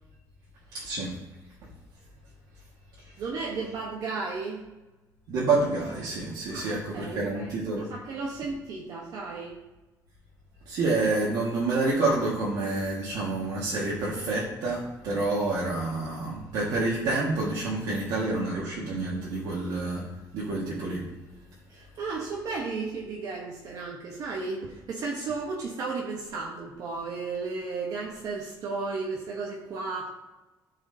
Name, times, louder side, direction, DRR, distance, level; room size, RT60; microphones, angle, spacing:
voice 1, 0.7-1.1 5.3-7.9 10.7-20.0 20.3-21.0, right 3 dB, 80° right, -5 dB, 1.8 m, -28 dB
voice 2, 3.2-4.6 6.5-7.6 7.9-9.6 21.7-30.1, right 4 dB, 60° right, -1 dB, 1.2 m, -34 dB
13.0 x 4.8 x 2.8 m, 1.1 s
cardioid pair, 155°, 7 cm